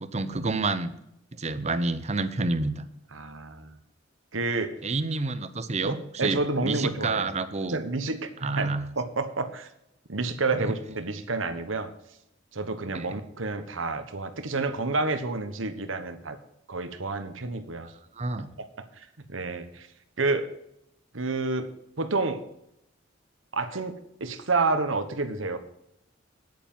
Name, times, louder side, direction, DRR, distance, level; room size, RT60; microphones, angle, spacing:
voice 1, 0.0-0.9 1.4-2.9 4.8-7.8 8.4-8.8 12.9-13.2 18.2-18.5, right 3 dB, 35° right, 12 dB, 0.8 m, -29 dB
voice 2, 3.1-3.8 4.3-4.8 5.8-7.3 7.7-9.7 10.1-11.9 12.5-16.4 16.7-17.9 18.6-18.7 18.9-19.9 20.2-20.5 21.1-22.4 23.5-25.6, right 3 dB, 80° right, 10 dB, 1.3 m, -29 dB
9.8 x 9.0 x 5.5 m, 0.79 s
head